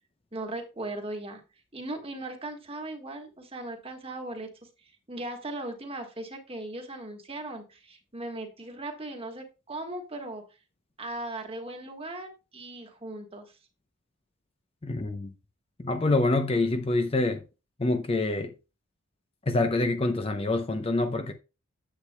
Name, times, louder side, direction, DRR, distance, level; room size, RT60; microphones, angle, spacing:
voice 1, 0.3-1.4 1.7-4.5 4.8-10.4 11.0-13.6, right 2 dB, 25° right, 1.5 m, -38 dB
voice 2, 14.8-15.3 15.8-17.4 17.8-18.5 19.5-21.3, left 2 dB, 25° left, 0.6 m, -26 dB
9.9 x 8.0 x 2.2 m
head